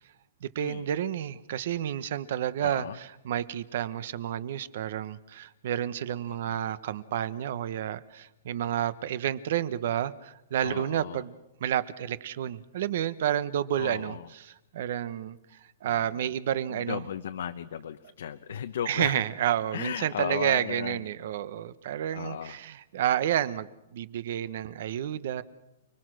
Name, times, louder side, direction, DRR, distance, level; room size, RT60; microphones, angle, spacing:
voice 1, 0.4-11.3 11.6-15.4 15.8-17.0 18.9-25.4, right 10 dB, 50° right, 15 dB, 1.0 m, -30 dB
voice 2, 2.6-3.0 6.3-6.6 10.6-11.2 13.8-14.3 15.8-16.1 16.7-19.2 19.7-21.0 22.1-22.6, left 9 dB, 65° left, 8 dB, 1.0 m, -36 dB
29.5 x 20.5 x 6.3 m, 0.92 s
hypercardioid pair, 175°, 0 cm